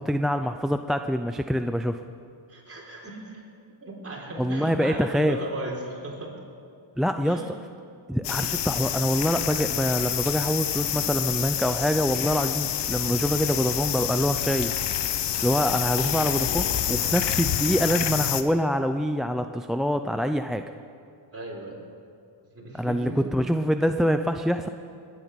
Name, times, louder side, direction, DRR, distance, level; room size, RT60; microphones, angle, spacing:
voice 1, 0.0-2.0 4.4-5.4 7.0-7.4 8.1-14.7 15.4-20.6 22.8-24.7, equal, ahead, 7 dB, 0.4 m, -25 dB
voice 2, 2.5-3.4 3.8-6.3 7.2-7.5 21.3-21.8 22.5-23.4, right 2 dB, 30° right, -2 dB, 3.9 m, -36 dB
sound 1, 8.2-18.4, left 10 dB, 60° left, 0.9 m, -27 dB
20.5 x 9.4 x 5.8 m, 2.4 s
cardioid pair, 85°, 47 cm